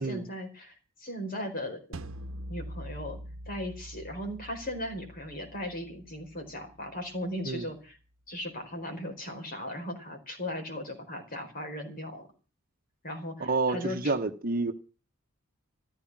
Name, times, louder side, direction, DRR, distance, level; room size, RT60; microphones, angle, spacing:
voice 1, 0.0-1.8 2.5-3.2 3.5-8.0 8.3-12.3 13.0-14.1, left 1 dB, 40° left, 4.6 m, -37 dB
sound 1, 1.9-7.0, equal, 65° right, 1.2 m, -44 dB
voice 2, 13.4-14.7, right 3 dB, 40° right, 1.2 m, -29 dB
14.5 x 13.0 x 6.1 m
head